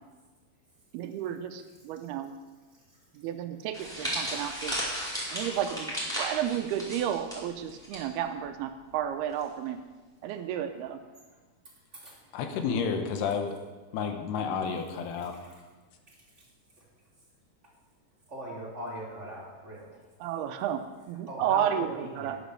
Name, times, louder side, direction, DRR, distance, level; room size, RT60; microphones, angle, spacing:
voice 1, 0.9-2.3 3.2-4.7 5.3-9.8 10.2-11.0 14.4-14.8 20.2-20.8 21.1-22.4, right 10 dB, 85° right, 8 dB, 2.6 m, -32 dB
sound 1, 3.7-8.0 8.3-8.5 9.4-9.7, equal, ahead, 4.1 m, -35 dB
voice 2, 12.3-13.6 13.9-15.4, left 6 dB, 85° left, 5 dB, 3.2 m, -30 dB
voice 3, 18.3-19.8 21.3-22.3, equal, 20° right, -5 dB, 2.6 m, -39 dB
11.0 x 9.2 x 6.7 m, 1.3 s
omnidirectional pair, 4.7 m